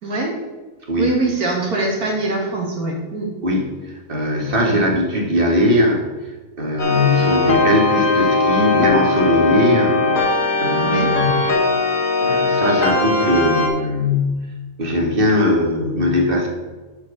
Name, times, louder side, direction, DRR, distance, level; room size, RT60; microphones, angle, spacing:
voice 1, 0.0-0.4 1.0-3.3 4.6-4.8 10.8-11.1, right 2 dB, 70° right, -2 dB, 2.6 m, -23 dB
voice 2, 3.4-6.0 6.6-11.3 12.2-14.5 14.8-16.5, left 1 dB, 35° right, 1 dB, 1.6 m, -19 dB
sound 1, 6.8-13.7, left 3 dB, 65° left, 1.9 m, -19 dB
8.4 x 4.6 x 7.0 m, 1.2 s
omnidirectional pair, 1.6 m